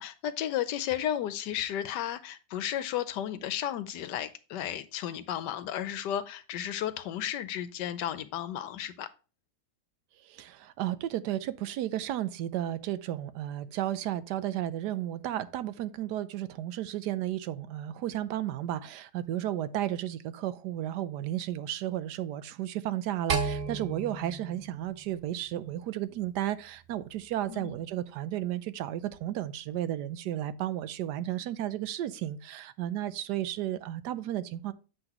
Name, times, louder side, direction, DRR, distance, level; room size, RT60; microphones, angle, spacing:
voice 1, 0.0-9.1 27.5-27.7, left 11 dB, 80° left, 1.3 m, -33 dB
voice 2, 10.2-34.7, right 12 dB, 75° right, 1.1 m, -33 dB
sound 1, 23.3-25.7, right 4 dB, 55° right, 0.6 m, -34 dB
7.7 x 5.9 x 2.9 m
omnidirectional pair, 1.9 m